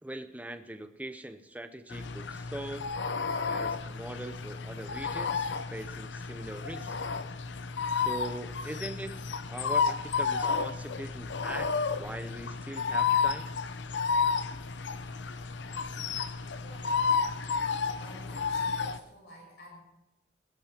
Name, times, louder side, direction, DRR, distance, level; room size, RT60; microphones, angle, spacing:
voice 1, 0.0-2.9 3.4-7.0 7.9-9.2 9.5-13.6, right 1 dB, 10° right, 9 dB, 0.6 m, -41 dB
sound 1, 1.9-19.0, left 5 dB, 80° left, 0.7 m, -31 dB
voice 2, 15.6-15.9 16.5-17.1 18.0-19.8, left 1 dB, 60° left, 0 dB, 6.0 m, -51 dB
21.0 x 16.0 x 2.9 m, 0.93 s
head